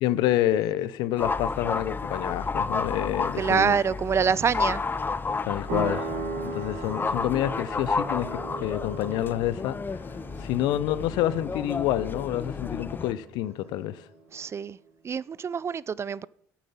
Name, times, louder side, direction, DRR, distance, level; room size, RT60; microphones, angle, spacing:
voice 1, 0.0-3.8 5.5-6.1 6.4-9.8 10.4-14.1, left 13 dB, 70° left, 0.7 m, -28 dB
sound 1, 1.2-13.1, left 4 dB, 25° left, 0.6 m, -31 dB
voice 2, 3.4-4.8 14.3-14.8 15.0-16.3, right 6 dB, 35° right, 0.4 m, -26 dB
sound 2, 5.7-14.0, right 4 dB, 80° right, 2.2 m, -39 dB
9.3 x 7.3 x 7.2 m
hypercardioid pair, 60°, 8 cm